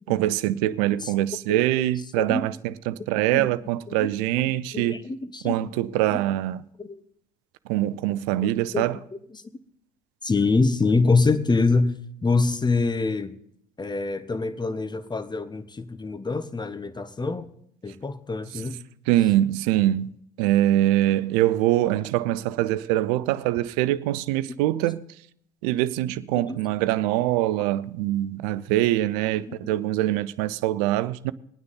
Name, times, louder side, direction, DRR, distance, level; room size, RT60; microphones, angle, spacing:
voice 1, 0.1-5.0 5.4-6.6 7.7-9.0 18.5-18.6 19.1-25.0 25.6-31.3, right 14 dB, 70° right, 0.6 m, -24 dB
voice 2, 4.4-5.7 6.8-7.0 8.4-9.0 9.3-9.4 10.2-11.9 12.2-13.3 13.8-17.5 17.8-18.8 26.3-26.5 29.5-29.6, left 3 dB, 20° left, 1.2 m, -25 dB
21.0 x 9.5 x 4.0 m
figure-of-eight pair, 55°, 21 cm